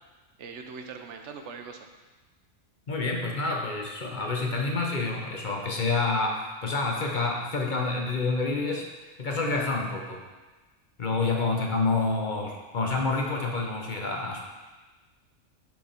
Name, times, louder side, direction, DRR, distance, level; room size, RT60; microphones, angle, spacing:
voice 1, 0.4-1.9, right 5 dB, 65° right, 4 dB, 1.0 m, -41 dB
voice 2, 2.9-8.8 9.2-10.2 11.0-14.4, left 3 dB, 40° left, 0 dB, 1.0 m, -28 dB
7.0 x 6.0 x 4.4 m, 1.2 s
omnidirectional pair, 1.4 m